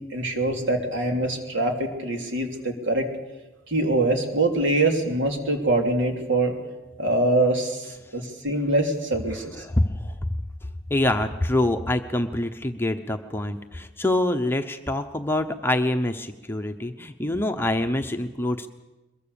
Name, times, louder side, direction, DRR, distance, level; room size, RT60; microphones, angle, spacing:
voice 1, 0.1-3.1 3.7-6.5 7.0-9.6, right 2 dB, 65° right, 3 dB, 3.2 m, -24 dB
voice 2, 9.3-10.1 10.9-18.7, left 1 dB, 10° left, 5 dB, 0.8 m, -25 dB
23.0 x 22.0 x 7.0 m, 1.1 s
head